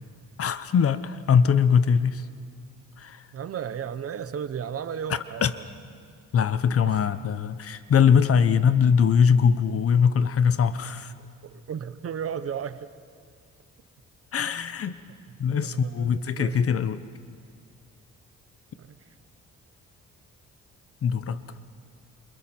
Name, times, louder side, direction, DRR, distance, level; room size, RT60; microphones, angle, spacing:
voice 1, 0.4-2.2 3.0-3.3 5.4-5.5 6.3-11.1 14.3-15.0 15.4-17.1 21.0-21.4, left 7 dB, 50° left, 13 dB, 1.0 m, -22 dB
voice 2, 3.3-5.6 6.9-7.1 11.2-12.9 15.5-16.6 18.8-19.0, right 8 dB, 50° right, 13 dB, 1.0 m, -34 dB
28.0 x 27.5 x 4.5 m, 2.1 s
cardioid pair, 90°, 30 cm